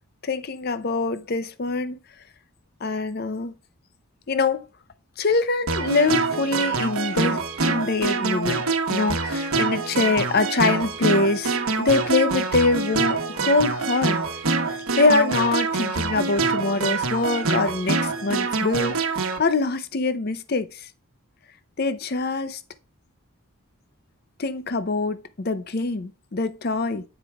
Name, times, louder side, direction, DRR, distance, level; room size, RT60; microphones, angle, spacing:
voice 1, 0.2-2.0 2.8-3.5 4.3-4.7 5.2-8.6 8.9-14.2 14.6-20.9 21.8-22.6 24.4-27.0, left 3 dB, 45° left, 0.6 m, -24 dB
sound 1, 5.7-19.4, right 4 dB, 75° right, 1.1 m, -25 dB
8.0 x 4.8 x 3.4 m
head